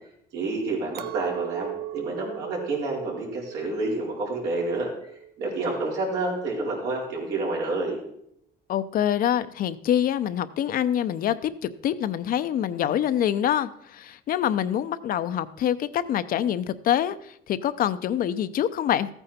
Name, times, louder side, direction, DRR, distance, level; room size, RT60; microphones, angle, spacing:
voice 1, 0.3-4.9 5.4-8.0, right 2 dB, 85° right, -3 dB, 4.4 m, -29 dB
Chink clink, 0.9-6.3, right 14 dB, 65° right, 0.6 m, -38 dB
voice 2, 8.7-19.1, left 10 dB, 60° left, 13 dB, 0.7 m, -25 dB
14.0 x 9.0 x 4.3 m, 0.72 s
cardioid pair, 110°, 17 cm